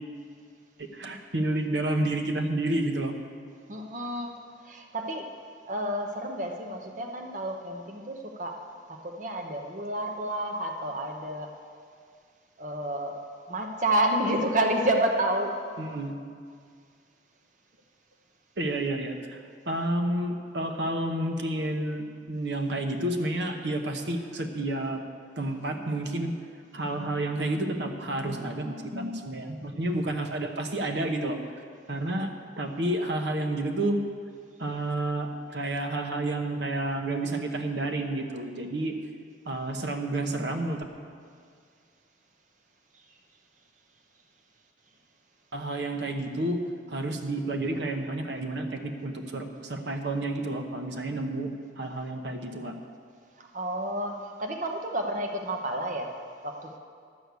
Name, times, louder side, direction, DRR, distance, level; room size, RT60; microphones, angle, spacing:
voice 1, 0.8-3.2 15.8-16.2 18.6-25.0 25.4-26.3 26.7-31.4 31.9-32.3 32.6-34.0 34.6-38.9 39.5-40.8 45.5-46.6 46.9-51.5 51.8-52.8, right 1 dB, 75° right, 4 dB, 0.9 m, -30 dB
voice 2, 3.7-4.3 4.6-5.3 5.7-8.5 8.9-11.5 12.6-13.2 13.5-15.6 53.4-56.1 56.4-56.8, right 1 dB, 45° right, 2 dB, 0.9 m, -30 dB
12.0 x 6.4 x 8.2 m, 2.1 s
head